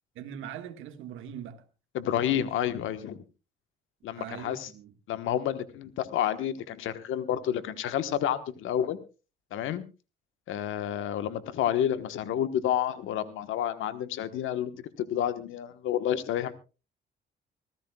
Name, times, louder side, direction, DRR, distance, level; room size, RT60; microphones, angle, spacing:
voice 1, 0.2-1.6 2.3-2.4 4.1-4.9, right 9 dB, 90° right, 1.7 m, -41 dB
voice 2, 1.9-3.2 4.0-4.7 5.1-9.0 9.5-9.8 10.5-16.5, left 10 dB, 85° left, 1.3 m, -30 dB
25.0 x 15.0 x 2.3 m
cardioid pair, 90°, 20 cm